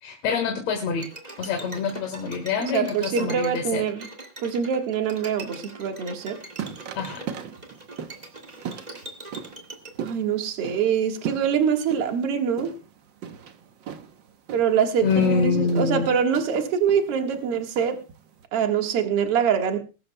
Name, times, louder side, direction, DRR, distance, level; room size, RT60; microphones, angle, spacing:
voice 1, 0.0-1.1 1.4-3.8 7.0-7.2 15.0-16.1, left 5 dB, 60° left, 3 dB, 2.7 m, -25 dB
Bowed string instrument, 1.0-9.9, right 2 dB, 20° right, 1.3 m, -41 dB
voice 2, 2.6-4.1 4.4-6.4 10.0-12.7 14.5-18.0 18.5-19.8, right 7 dB, 55° right, 4 dB, 2.3 m, -24 dB
sound 1, 6.1-18.4, right 8 dB, 85° right, 1.0 m, -39 dB
21.0 x 12.0 x 2.2 m, 0.32 s
omnidirectional pair, 3.4 m